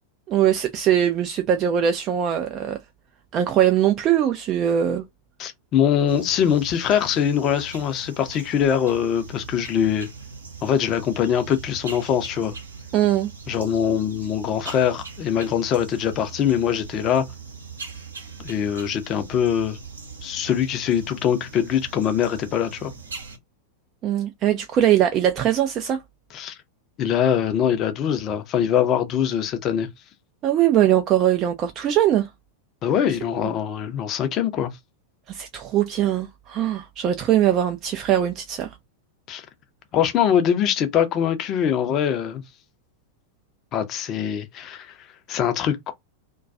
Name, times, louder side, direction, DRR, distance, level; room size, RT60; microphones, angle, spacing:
voice 1, 0.3-2.8 3.3-5.0 12.9-13.3 24.0-26.0 30.4-32.3 35.3-38.7, right 10 dB, 35° right, 0.3 m, -21 dB
voice 2, 5.4-10.1 10.6-12.6 13.5-17.3 18.4-19.8 20.2-22.9 26.3-26.6 27.0-29.9 32.8-34.7 39.3-39.5 39.9-42.4 43.7-44.9 45.3-45.9, left 9 dB, 35° left, 0.5 m, -23 dB
sound 1, 6.1-23.4, right 5 dB, 75° right, 0.7 m, -40 dB
2.2 x 2.2 x 2.5 m
figure-of-eight pair, 90°, 0 cm